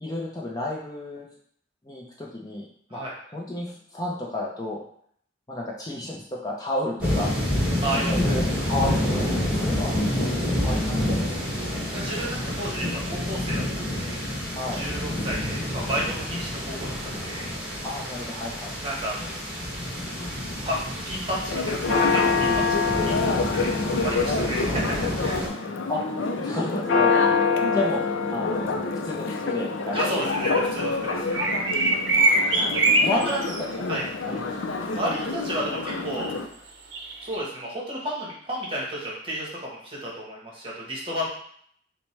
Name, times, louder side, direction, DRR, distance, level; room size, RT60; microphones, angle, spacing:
voice 1, 0.0-1.3 1.8-3.0 3.3-4.8 5.5-7.3 7.9-11.0 14.5-14.8 17.8-18.7 25.9-26.0 26.4-27.2 27.7-28.0 28.3-28.7 29.0-30.2 32.2-33.4 34.3-34.5, left 1 dB, 20° left, -3 dB, 0.5 m, -31 dB
sound 1, 7.0-25.5, left 1 dB, 10° right, 1.3 m, -28 dB
voice 2, 7.8-8.1 11.9-14.2 14.7-17.5 18.8-19.4 20.6-20.8 21.0-23.7 24.0-25.7 29.9-31.4 33.1-33.4 33.9-34.0 34.9-36.3 37.2-41.3, right 1 dB, 30° right, -3 dB, 1.1 m, -32 dB
Church bell, 21.5-36.5, left 4 dB, 80° left, 0.5 m, -26 dB
sound 2, 31.3-33.6 36.9-37.4, right 2 dB, 70° right, 0.6 m, -22 dB
6.0 x 2.2 x 3.2 m, 0.63 s
head